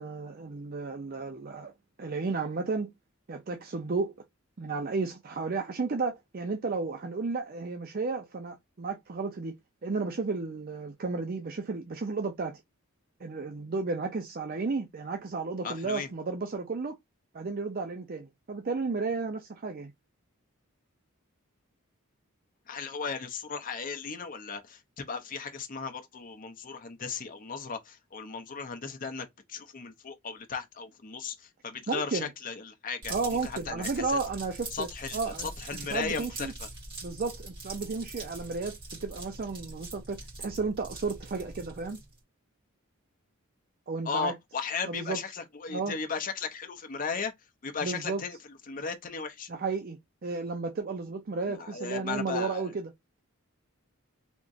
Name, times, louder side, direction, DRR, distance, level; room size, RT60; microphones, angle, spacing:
voice 1, 0.0-1.7 2.0-2.9 3.3-4.1 4.6-9.5 9.8-12.6 13.2-17.0 17.3-19.9 31.9-32.3 33.1-36.5 37.0-42.0 43.9-44.3 44.9-45.2 45.7-45.9 47.8-48.2 49.5-52.9, right 4 dB, 45° right, 0.5 m, -33 dB
voice 2, 15.6-16.1 22.7-33.1 33.4-34.2 34.7-36.5 44.0-47.3 47.6-48.4 48.7-49.5 51.5-52.7, left 5 dB, 40° left, 0.6 m, -36 dB
sound 1, 33.0-42.2, right 2 dB, 25° right, 2.0 m, -43 dB
3.6 x 2.9 x 2.6 m
head